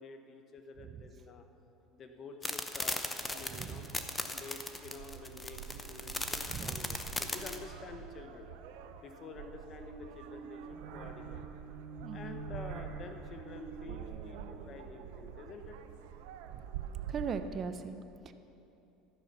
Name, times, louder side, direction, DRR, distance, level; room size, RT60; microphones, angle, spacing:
voice 1, 0.0-1.4 1.9-3.9 4.3-8.5 9.0-11.5 12.1-15.8, left 4 dB, 30° left, 6 dB, 1.1 m, -49 dB
sound 1, 2.4-7.6, left 2 dB, 10° left, 0.7 m, -37 dB
sound 2, 3.2-17.5, right 9 dB, 80° right, 0.8 m, -47 dB
voice 2, 3.5-3.8 6.5-7.0 12.0-12.4 16.5-16.6 16.9-18.3, right 6 dB, 30° right, 10 dB, 0.7 m, -40 dB
sound 3, 7.2-16.3, right 4 dB, 65° right, 1.4 m, -49 dB
13.5 x 10.0 x 6.8 m, 2.9 s
cardioid pair, 155°, 0 cm